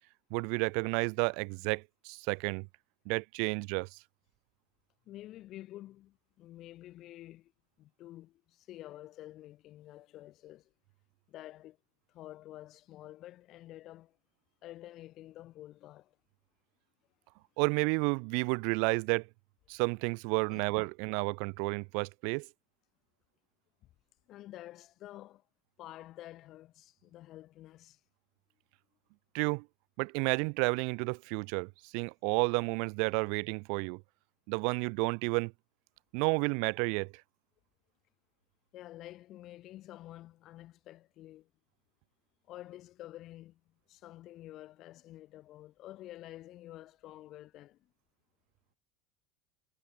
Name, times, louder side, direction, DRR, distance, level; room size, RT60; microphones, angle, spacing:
voice 1, 0.3-2.7 3.1-3.9 17.6-19.2 19.7-22.5 29.3-29.6 30.0-34.0 34.5-35.5 36.1-37.1, right 40 dB or more, 60° right, 1.2 m, -31 dB
voice 2, 5.1-7.5 7.8-10.7 11.3-11.8 12.1-14.1 14.6-16.1 20.5-20.6 24.3-25.4 25.8-28.0 38.7-41.5 42.5-43.6 43.9-47.8, left 15 dB, 40° left, 4.6 m, -49 dB
supercardioid pair, 150°, 0 cm